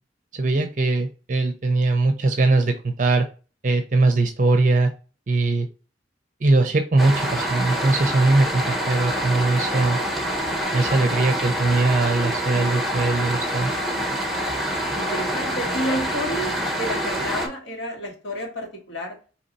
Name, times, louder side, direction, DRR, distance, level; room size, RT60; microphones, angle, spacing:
voice 1, 0.3-3.3 3.6-4.9 5.3-5.7 6.4-10.0 10.7-13.7, right 3 dB, 40° right, 0.5 m, -21 dB
sound 1, 7.0-17.5, equal, ahead, 0.8 m, -26 dB
voice 2, 15.0-19.2, equal, 80° left, 1.8 m, -30 dB
4.2 x 3.0 x 4.0 m
head